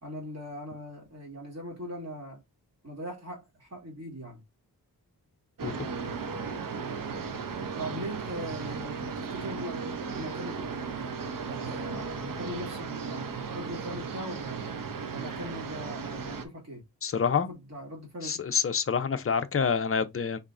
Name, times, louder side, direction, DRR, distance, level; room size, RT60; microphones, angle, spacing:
voice 1, 0.0-2.4 2.8-4.4 7.8-11.1 11.5-14.6 15.1-16.8 17.4-18.3, equal, 45° right, 2.3 m, -40 dB
sound 1, 5.6-16.4, right 5 dB, 60° right, 0.8 m, -36 dB
voice 2, 17.0-17.5 18.2-20.4, left 6 dB, 35° left, 0.6 m, -27 dB
5.5 x 3.5 x 2.5 m
wide cardioid pair, 115°, 37 cm